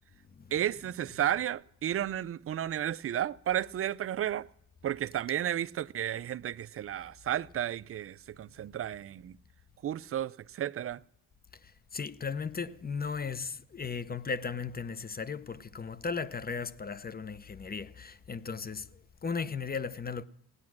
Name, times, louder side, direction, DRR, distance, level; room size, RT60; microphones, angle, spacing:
voice 1, 0.5-4.5 4.8-9.4 9.8-11.0, right 11 dB, 35° right, 0.4 m, -33 dB
voice 2, 11.6-20.2, left 5 dB, 20° left, 0.7 m, -36 dB
17.0 x 9.6 x 6.0 m
supercardioid pair, 70°, 43 cm